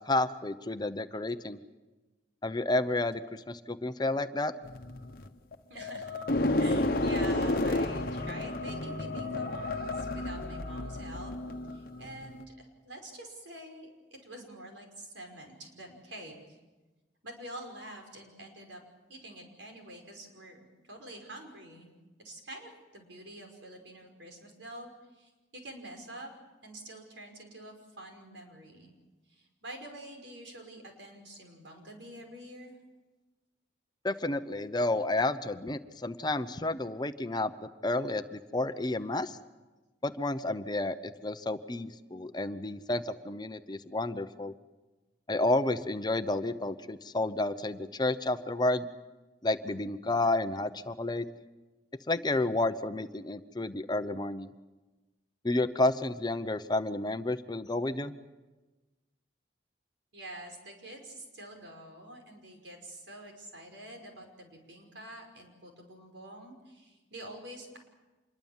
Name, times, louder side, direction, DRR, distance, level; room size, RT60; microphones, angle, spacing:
voice 1, 0.1-1.6 2.4-4.5 34.0-39.4 40.0-41.0 41.2-44.5 45.3-48.9 49.4-51.3 52.1-54.5 55.4-58.1, left 2 dB, 25° left, 10 dB, 0.8 m, -31 dB
sound 1, 4.6-12.4, left 2 dB, 50° left, 1.1 m, -31 dB
voice 2, 5.7-6.2 6.6-11.3 11.7-16.6 17.2-18.8 19.1-21.9 22.2-26.3 26.6-28.9 29.3-32.7 60.1-67.8, right 1 dB, 85° right, 3 dB, 5.7 m, -47 dB
26.0 x 22.0 x 7.3 m, 1.2 s
head